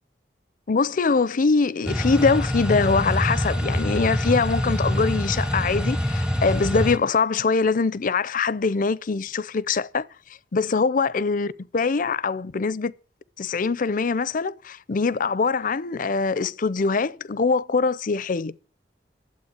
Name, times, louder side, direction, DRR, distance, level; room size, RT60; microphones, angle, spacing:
voice 1, 0.7-10.1 10.5-12.9 13.4-18.6, left 4 dB, 45° left, 0.5 m, -23 dB
sound 1, 1.9-7.0, equal, 5° right, 0.7 m, -25 dB
12.0 x 7.9 x 8.0 m
head